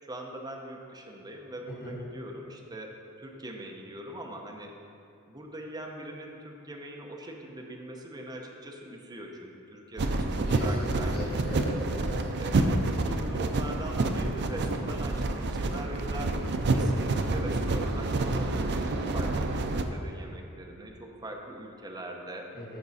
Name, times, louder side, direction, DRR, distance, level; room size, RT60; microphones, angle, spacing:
voice 1, 0.0-2.9 3.2-4.7 5.3-11.5 12.4-16.3 16.7-22.5, right 1 dB, 20° right, 1 dB, 0.8 m, -42 dB
sound 1, 10.0-19.8, right 2 dB, 50° right, 0.5 m, -28 dB
voice 2, 10.5-12.3 16.6-16.9 22.5-22.8, left 1 dB, 45° left, -8 dB, 1.8 m, -39 dB
13.5 x 4.7 x 4.2 m, 2.6 s
head